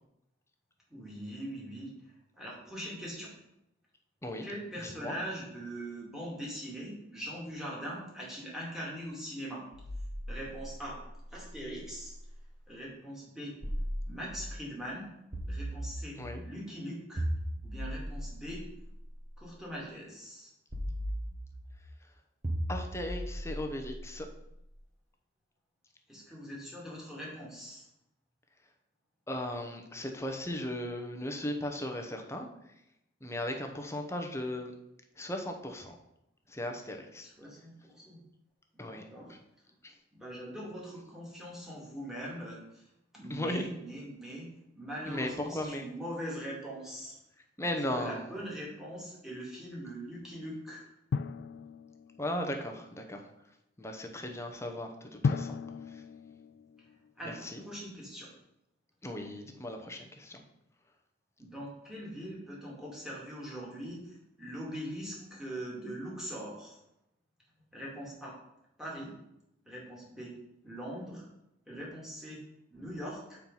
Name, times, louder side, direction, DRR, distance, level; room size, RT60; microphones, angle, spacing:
voice 1, 0.9-1.9 2.4-3.3 4.4-9.6 10.3-11.0 11.3-12.1 12.7-13.5 14.0-15.1 15.5-16.2 16.4-17.2 17.6-18.7 19.4-20.5 26.1-27.8 37.2-38.2 38.7-39.3 40.1-42.8 43.1-44.5 44.7-47.2 47.7-50.8 57.2-58.3 61.4-66.8 67.7-68.3 68.8-69.1 69.7-70.3 70.6-71.2 71.7-72.4 72.7-73.4, equal, 5° right, -4 dB, 2.2 m, -41 dB
voice 2, 4.8-5.2 16.2-16.4 22.7-24.3 29.3-32.5 33.2-34.7 35.2-36.0 36.5-37.3 38.8-39.0 39.3-39.4 39.8-39.9 43.3-43.7 45.1-45.9 47.6-48.3 52.2-53.2 53.8-55.6 55.9-56.0 57.2-57.6 59.0-60.4, left 1 dB, 15° left, 4 dB, 0.8 m, -37 dB
sound 1, 9.7-12.5 13.6-14.7 15.3-16.4 17.2-19.4 20.7-21.8 22.4-24.6, equal, 40° right, 1.4 m, -38 dB
Drum, 51.1-52.6 55.2-57.4, left 5 dB, 60° left, 0.3 m, -35 dB
7.3 x 4.5 x 5.4 m, 0.84 s
head